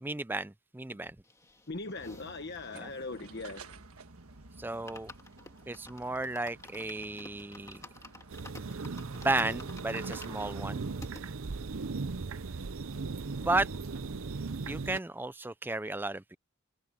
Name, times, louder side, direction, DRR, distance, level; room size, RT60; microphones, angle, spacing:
voice 1, 0.0-1.1 4.6-5.1 5.7-7.8 9.1-10.8 13.4-13.7 14.7-16.4, right 2 dB, 10° right, 0.4 m, -33 dB
sound 1, 1.2-4.0 4.3-4.4 4.7-11.2 11.8-11.9 12.1-12.2 12.5-13.5 13.7-13.8, left 2 dB, 15° left, 2.2 m, -52 dB
voice 2, 1.7-3.8, left 3 dB, 50° left, 1.2 m, -40 dB
sound 2, 1.9-14.8, right 3 dB, 85° right, 1.5 m, -52 dB
sound 3, 8.3-15.0, right 4 dB, 70° right, 0.7 m, -38 dB
head